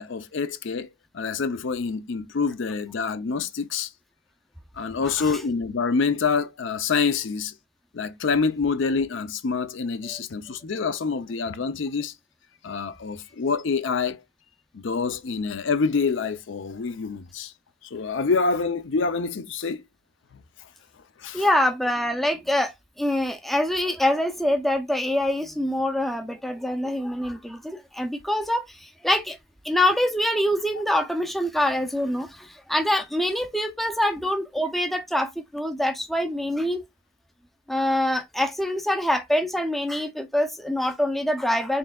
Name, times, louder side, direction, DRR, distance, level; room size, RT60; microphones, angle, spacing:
voice 1, 0.0-3.9 4.8-7.5 7.9-12.1 12.6-14.2 14.7-17.5 17.9-19.8 21.2-21.5, left 5 dB, 65° left, 0.5 m, -26 dB
voice 2, 5.0-5.4 10.0-10.2 21.3-29.4 29.6-36.8 37.7-41.8, left 1 dB, ahead, 0.4 m, -25 dB
4.4 x 3.6 x 2.3 m
head